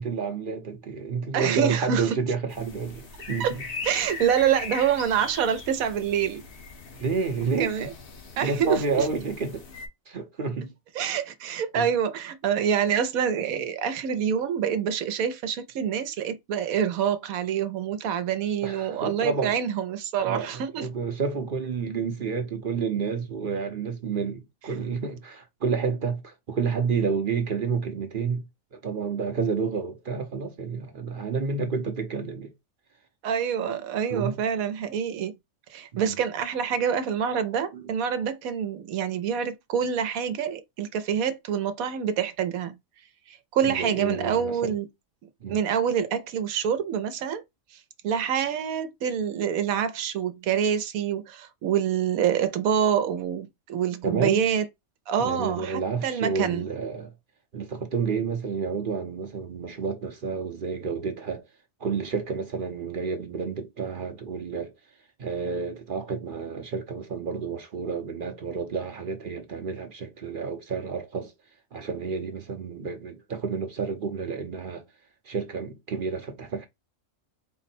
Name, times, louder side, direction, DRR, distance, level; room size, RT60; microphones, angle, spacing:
voice 1, 0.0-3.5 7.0-7.9 8.4-9.6 10.1-10.7 11.8-11.9 18.6-19.6 20.2-28.4 28.7-32.5 34.1-34.4 35.9-36.1 37.7-37.9 43.6-44.8 45.4-45.6 54.0-54.5 55.2-57.1 57.5-61.4 61.8-64.7 65.2-71.3 71.7-74.8 75.3-76.7, right 5 dB, 45° right, 0.7 m, -30 dB
voice 2, 1.3-2.2 3.4-3.5 3.8-6.4 7.6-7.9 8.4-9.1 11.0-20.9 33.2-35.3 35.7-42.8 43.3-44.9 45.5-47.4 47.7-54.6 55.1-56.6, right 8 dB, 85° right, 1.1 m, -26 dB
sound 1, 2.5-9.9, left 4 dB, 45° left, 1.0 m, -40 dB
4.4 x 2.1 x 4.1 m
omnidirectional pair, 1.4 m